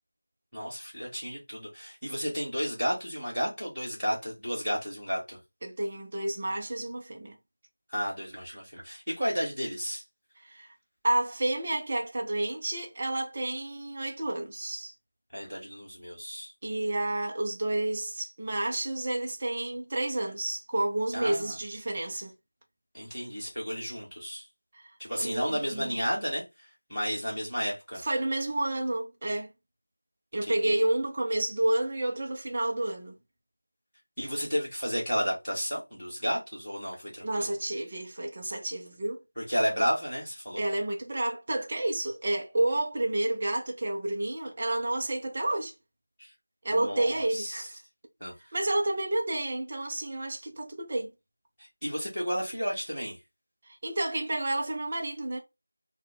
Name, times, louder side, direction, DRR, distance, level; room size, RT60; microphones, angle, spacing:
voice 1, 0.5-5.4 7.9-10.0 15.3-16.5 21.1-21.5 22.9-24.4 25.0-26.4 26.9-28.0 30.5-30.8 34.2-37.5 39.3-40.6 46.2-46.3 46.7-47.7 48.2-48.3 51.6-53.2, equal, ahead, 1.6 m, -32 dB
voice 2, 5.6-7.4 10.4-10.7 11.0-14.9 16.6-22.3 24.7-24.9 25.2-26.0 28.0-29.5 30.3-33.1 37.2-39.2 40.6-45.7 46.6-47.8 48.5-51.1 53.6-55.4, right 1 dB, 20° right, 0.6 m, -30 dB
3.9 x 2.2 x 3.8 m
figure-of-eight pair, 180°, 0 cm